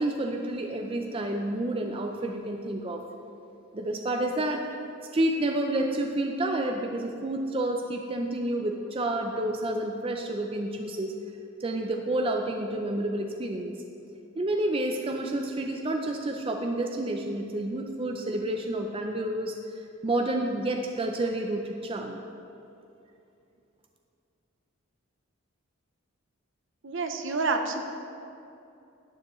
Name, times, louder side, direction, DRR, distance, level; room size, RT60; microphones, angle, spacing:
voice 1, 0.0-3.0 3.7-4.6 5.1-11.1 11.6-13.7 14.4-19.5 20.0-22.2, right 1 dB, 25° right, 3 dB, 0.4 m, -29 dB
voice 2, 26.8-27.8, right 3 dB, 60° right, 5 dB, 0.7 m, -28 dB
11.5 x 9.2 x 3.1 m, 2.7 s
head